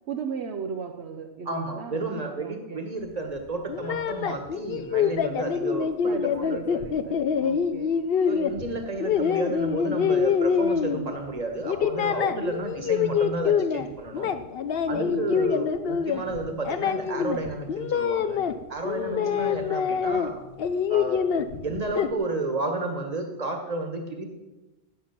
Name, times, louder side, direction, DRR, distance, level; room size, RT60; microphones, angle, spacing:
voice 1, 0.1-2.1 2.4-2.8 6.0-8.0 12.3-12.6 14.8-15.6 18.9-19.6, right 5 dB, 70° right, 5 dB, 1.0 m, -37 dB
voice 2, 1.4-6.8 8.2-14.3 14.9-18.4 18.7-20.4 20.9-21.2 21.6-24.3, right 2 dB, 35° right, 5 dB, 1.5 m, -32 dB
sound 1, 3.7-11.3 11.6-13.9 14.1-18.5 18.8-20.3 20.6-22.1, left 7 dB, 60° left, 0.9 m, -26 dB
13.0 x 8.8 x 5.9 m, 1.1 s
omnidirectional pair, 1.1 m